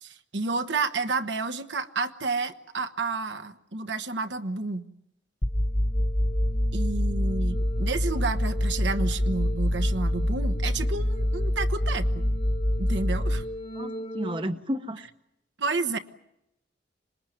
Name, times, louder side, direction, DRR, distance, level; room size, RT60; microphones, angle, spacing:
voice 1, 0.0-4.9 6.7-12.3 12.8-13.4 15.6-16.0, right 3 dB, 75° right, 8 dB, 1.2 m, -30 dB
sound 1, 5.4-14.4, left 1 dB, 30° left, 1.3 m, -26 dB
voice 2, 13.7-15.1, equal, 25° right, 9 dB, 0.9 m, -32 dB
26.5 x 20.5 x 9.3 m, 0.85 s
head